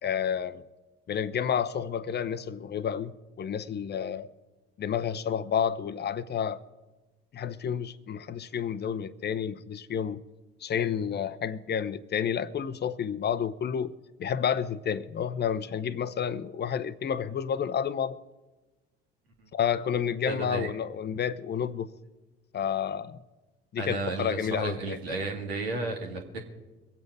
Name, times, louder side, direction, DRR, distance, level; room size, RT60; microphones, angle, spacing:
voice 1, 0.0-0.6 1.1-4.3 4.8-6.6 7.3-10.2 10.6-13.9 14.2-18.2 19.5-21.9 22.5-23.2 23.7-25.0, left 8 dB, 35° left, 0.7 m, -30 dB
voice 2, 20.3-20.7 23.8-26.5, right 3 dB, 80° right, 2.1 m, -33 dB
23.5 x 8.4 x 4.8 m
figure-of-eight pair, 55°, 31 cm